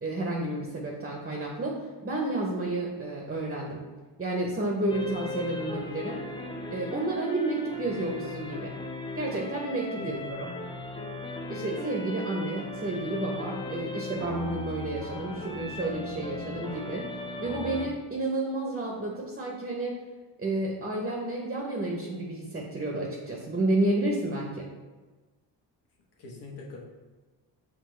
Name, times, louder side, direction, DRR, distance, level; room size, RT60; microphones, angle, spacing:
voice 1, 0.0-3.8 4.2-6.2 6.7-8.7 9.1-10.2 11.5-17.1 17.4-20.0 20.4-24.7, right 2 dB, 20° right, -1 dB, 0.7 m, -31 dB
sound 1, 4.9-17.9, left 2 dB, 10° left, 0.3 m, -37 dB
voice 2, 10.0-10.6 26.2-26.8, left 3 dB, 60° left, -1 dB, 1.1 m, -42 dB
5.9 x 2.3 x 3.2 m, 1.3 s
supercardioid pair, 65°, 45 cm